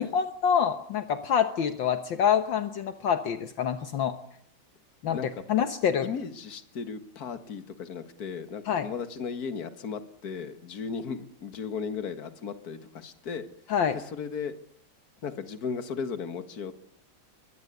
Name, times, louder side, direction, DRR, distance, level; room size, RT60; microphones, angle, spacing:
voice 1, 0.0-4.2 5.0-5.2 5.5-6.1 8.7-8.9 13.7-14.0, left 8 dB, 70° left, 9 dB, 1.8 m, -26 dB
voice 2, 6.0-13.5 13.9-14.5 15.2-16.9, left 6 dB, 50° left, 10 dB, 2.1 m, -36 dB
23.5 x 19.0 x 8.3 m, 0.71 s
omnidirectional pair, 2.2 m